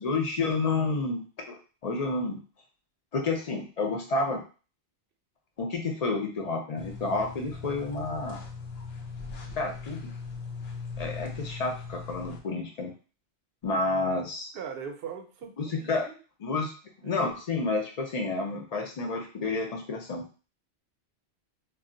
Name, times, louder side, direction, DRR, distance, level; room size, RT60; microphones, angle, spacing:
voice 1, 0.0-1.6 1.8-2.4 3.1-4.4 5.6-8.4 9.6-10.1 11.0-12.9 13.6-14.5 15.6-16.1 16.4-16.7 17.0-20.2, left 3 dB, 50° left, 2 dB, 0.5 m, -30 dB
sound 1, 6.8-12.4, left 4 dB, 70° left, 0.8 m, -40 dB
voice 2, 14.5-16.2 17.0-17.3, right 7 dB, 65° right, 4 dB, 0.7 m, -40 dB
2.3 x 2.2 x 3.7 m, 0.35 s
omnidirectional pair, 1.1 m